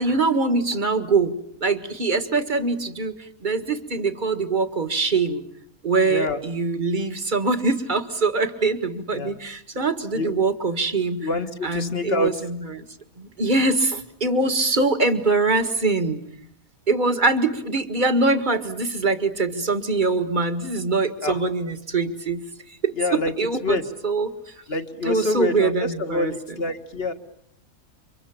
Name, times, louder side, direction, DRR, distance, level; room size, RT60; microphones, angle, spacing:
voice 1, 0.0-3.1 3.4-5.4 5.8-11.3 11.6-12.8 13.2-16.2 16.9-22.4 22.8-23.8 24.0-24.3 25.0-26.6, right 3 dB, 35° right, 10 dB, 1.9 m, -23 dB
voice 2, 6.1-6.4 9.1-9.3 10.1-10.4 11.2-12.3 21.2-21.4 22.9-23.3 23.6-23.8 24.7-27.1, left 2 dB, 45° left, 8 dB, 2.1 m, -26 dB
30.0 x 25.5 x 7.1 m, 0.69 s
omnidirectional pair, 1.4 m